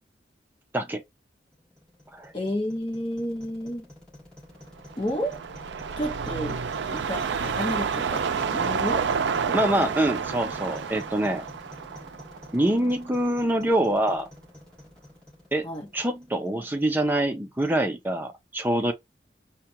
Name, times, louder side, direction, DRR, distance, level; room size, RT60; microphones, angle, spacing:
sound 1, 1.5-16.7, left 1 dB, 5° left, 2.9 m, -47 dB
voice 1, 2.3-3.9 5.0-5.4 6.0-6.6 6.9-9.1 9.5-9.8 15.6-15.9, equal, 25° left, 1.0 m, -31 dB
sound 2, 4.8-13.3 13.6-13.7, right 6 dB, 75° right, 0.4 m, -29 dB
voice 2, 9.5-11.4 12.5-14.3 15.5-15.6 15.9-18.9, right 1 dB, 10° right, 0.5 m, -25 dB
4.9 x 2.2 x 2.9 m
head